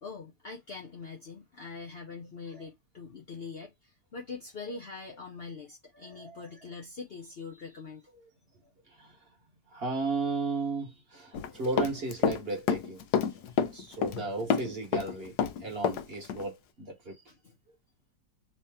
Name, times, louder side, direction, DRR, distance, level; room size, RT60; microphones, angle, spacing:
voice 1, 0.0-8.1 13.3-13.6 14.1-14.3 17.3-17.6, left 4 dB, 55° left, 0.7 m, -43 dB
voice 2, 5.9-6.5 8.9-9.2 9.7-13.0 13.7-15.3 15.6-17.2, right 3 dB, 40° right, 1.2 m, -35 dB
Run, 11.3-12.4 12.7-14.2 14.5-16.0 16.3-16.4, left 7 dB, 80° left, 1.2 m, -28 dB
3.2 x 2.8 x 3.4 m
omnidirectional pair, 1.7 m